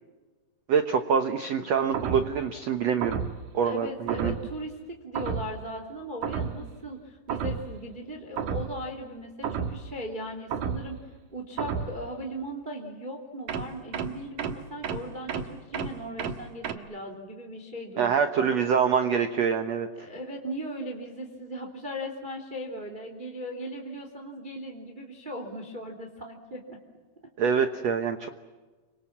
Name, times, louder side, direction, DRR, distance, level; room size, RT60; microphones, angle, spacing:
voice 1, 0.7-3.2 3.5-4.3 18.0-19.9 27.4-28.3, right 6 dB, 80° right, 8 dB, 1.4 m, -25 dB
sound 1, 1.9-2.4 3.0-3.5 4.1-4.5 5.2-5.6 6.2-6.7 7.3-7.8 8.4-8.8 9.4-9.9 10.5-11.0 11.6-12.0 13.5-16.7, right 6 dB, 60° right, 2.9 m, -31 dB
voice 2, 3.6-11.0 11.3-18.6 20.0-26.8 27.5-27.7, equal, 15° right, 3 dB, 2.6 m, -38 dB
30.0 x 25.5 x 7.4 m, 1.3 s
omnidirectional pair, 4.8 m